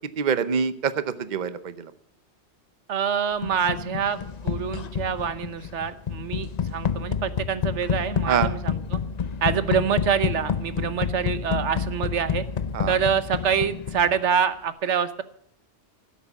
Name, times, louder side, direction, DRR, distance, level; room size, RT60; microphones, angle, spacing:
voice 1, 0.2-1.9 8.3-8.5 12.7-12.9, right 7 dB, 45° right, 13 dB, 0.9 m, -25 dB
voice 2, 2.9-9.0 9.4-12.4 12.9-15.2, right 7 dB, 85° right, 13 dB, 1.2 m, -26 dB
sound 1, 3.4-14.3, left 7 dB, 45° left, 0.7 m, -29 dB
16.5 x 8.4 x 7.2 m, 0.69 s
omnidirectional pair, 1.2 m